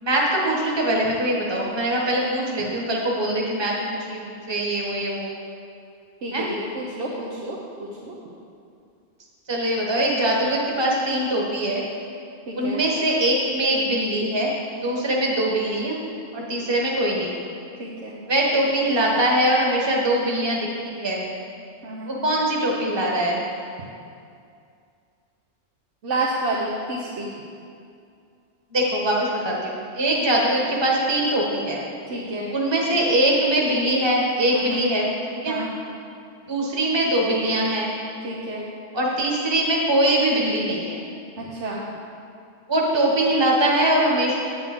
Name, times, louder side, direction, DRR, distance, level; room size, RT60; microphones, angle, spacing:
voice 1, 0.0-5.3 6.3-6.4 9.5-11.8 12.5-14.5 14.8-16.0 16.3-17.4 18.3-20.6 20.8-21.2 22.0-23.4 28.7-31.8 32.5-35.1 35.4-35.6 36.5-37.9 38.9-41.0 42.7-44.3, right 1 dB, 25° right, -3 dB, 1.1 m, -22 dB
voice 2, 6.2-8.1 12.5-12.8 17.8-18.1 21.8-22.1 26.0-27.3 32.1-32.5 34.5-34.8 35.5-35.7 38.2-38.7 41.4-41.8, right 2 dB, 80° right, -5 dB, 1.2 m, -30 dB
8.4 x 8.3 x 3.7 m, 2.4 s
omnidirectional pair, 1.2 m